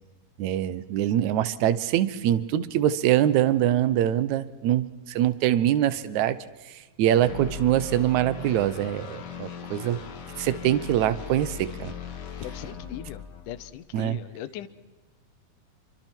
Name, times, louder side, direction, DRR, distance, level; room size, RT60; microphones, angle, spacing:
voice 1, 0.4-6.4 7.0-10.0 10.4-11.9 13.9-14.2, right 11 dB, 70° right, 15 dB, 2.0 m, -24 dB
sound 1, 7.2-13.7, left 7 dB, 50° left, 2.9 m, -39 dB
voice 2, 12.4-14.7, left 12 dB, 75° left, 14 dB, 2.3 m, -39 dB
28.5 x 24.5 x 4.5 m, 1.2 s
omnidirectional pair, 4.1 m